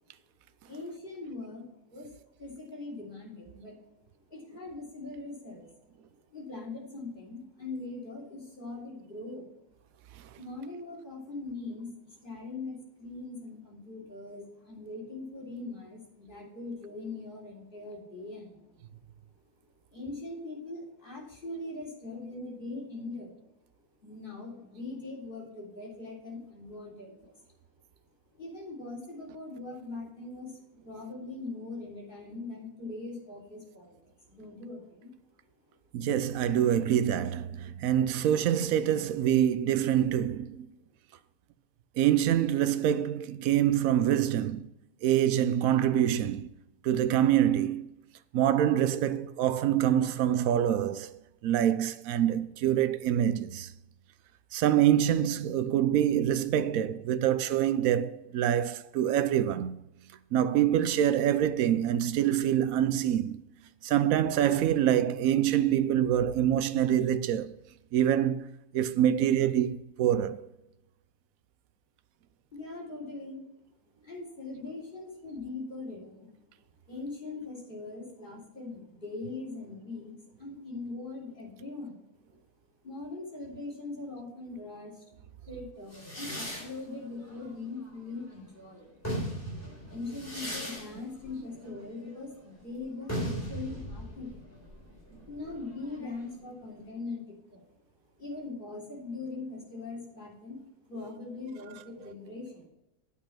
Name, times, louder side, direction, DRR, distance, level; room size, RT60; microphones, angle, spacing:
voice 1, 0.6-2.1 2.4-3.7 4.3-5.7 6.3-9.5 10.4-18.8 19.9-23.3 24.0-27.4 28.3-34.0 34.3-35.1 72.5-73.5 74.0-76.3 76.9-82.0 82.8-88.9 89.9-94.3 95.3-97.6 98.2-100.6 100.9-102.7, left 3 dB, 30° left, 3.4 m, -41 dB
voice 2, 35.9-40.7 42.0-44.7 45.0-46.5 46.8-47.9 48.3-53.7 54.5-59.8 60.3-63.4 63.8-67.5 67.9-70.5, right 10 dB, 70° right, 0.9 m, -26 dB
sound 1, 85.9-88.4 88.8-96.3, equal, 10° left, 3.6 m, -39 dB
8.9 x 5.6 x 5.8 m
omnidirectional pair, 1.6 m